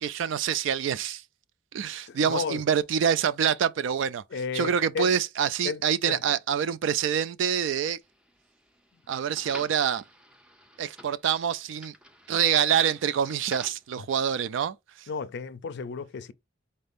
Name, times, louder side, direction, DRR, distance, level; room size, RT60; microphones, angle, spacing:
voice 1, 0.0-1.2 1.7-4.2 4.5-8.0 9.1-10.0 10.8-11.9 12.3-14.8, right 8 dB, 70° right, 0.3 m, -26 dB
voice 2, 2.1-2.6 4.3-5.1 5.6-6.3 14.0-14.1 15.1-16.3, left 5 dB, 60° left, 0.4 m, -33 dB
sound 1, 8.0-13.9, equal, 5° right, 0.4 m, -50 dB
4.3 x 2.6 x 3.5 m
head